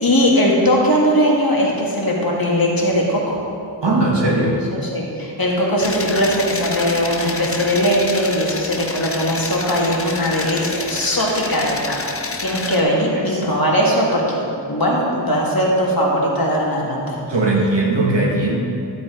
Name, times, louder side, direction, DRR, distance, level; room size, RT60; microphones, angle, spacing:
voice 1, 0.0-3.4 4.7-17.2, equal, 50° left, -3 dB, 2.0 m, -19 dB
voice 2, 3.8-4.6 13.1-13.4 17.3-18.6, right 2 dB, 65° right, -3 dB, 1.9 m, -19 dB
sound 1, 5.8-12.8, left 3 dB, 30° left, 0.7 m, -29 dB
12.5 x 7.6 x 3.9 m, 2.5 s
wide cardioid pair, 65°, 46 cm